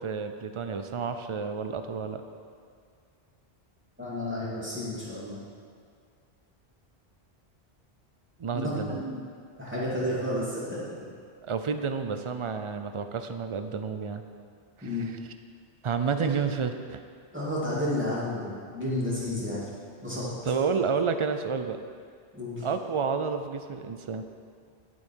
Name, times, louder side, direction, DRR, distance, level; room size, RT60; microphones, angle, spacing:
voice 1, 0.0-2.2 8.4-9.0 11.4-14.2 14.8-15.2 15.8-17.0 20.4-21.8 22.6-24.2, right 5 dB, 45° right, 8 dB, 0.4 m, -30 dB
voice 2, 4.0-5.4 8.5-9.2 9.6-10.8 14.8-15.1 16.2-16.3 17.3-19.7 20.0-20.3 22.3-22.6, left 1 dB, 10° right, -8 dB, 2.7 m, -31 dB
10.0 x 8.5 x 4.5 m, 2.2 s
omnidirectional pair, 1.1 m